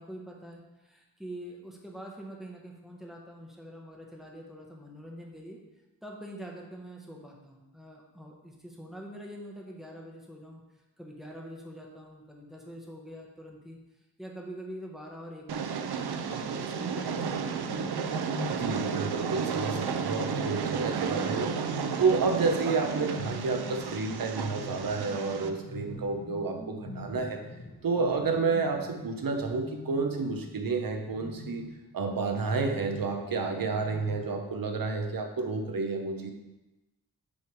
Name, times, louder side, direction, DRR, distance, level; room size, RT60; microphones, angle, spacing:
voice 1, 0.0-5.6 6.0-10.6 11.0-13.8 14.2-17.9, equal, ahead, -1 dB, 1.1 m, -45 dB
Train, 15.5-25.5, right 6 dB, 75° right, 0.6 m, -33 dB
sound 1, 17.1-31.8 32.5-34.4, left 1 dB, 40° left, 1.5 m, -43 dB
voice 2, 18.5-21.5 22.0-27.4 27.8-31.6 31.9-36.3, right 4 dB, 60° right, 4 dB, 0.9 m, -30 dB
8.8 x 3.5 x 4.6 m, 1.0 s
wide cardioid pair, 135°, 39 cm